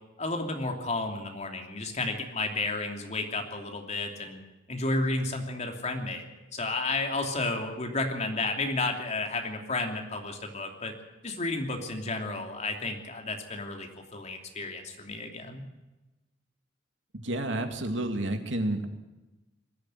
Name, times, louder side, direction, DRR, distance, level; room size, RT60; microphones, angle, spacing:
voice 1, 0.2-4.4 4.7-6.2 6.5-10.9 11.2-15.6, left 2 dB, 35° left, 3 dB, 2.9 m, -32 dB
voice 2, 17.1-18.9, right 1 dB, 75° right, 6 dB, 2.4 m, -30 dB
21.0 x 14.0 x 9.2 m, 1.1 s
head